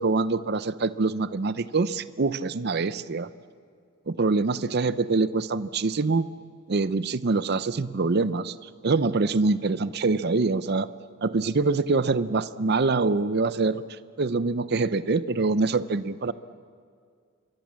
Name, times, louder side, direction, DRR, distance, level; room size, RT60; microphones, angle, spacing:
voice 1, 0.0-3.3 4.1-6.3 6.7-8.5 8.8-10.9 11.2-13.8 14.2-16.3, right 3 dB, 50° right, 15 dB, 0.6 m, -25 dB
27.0 x 22.5 x 7.5 m, 2.2 s
head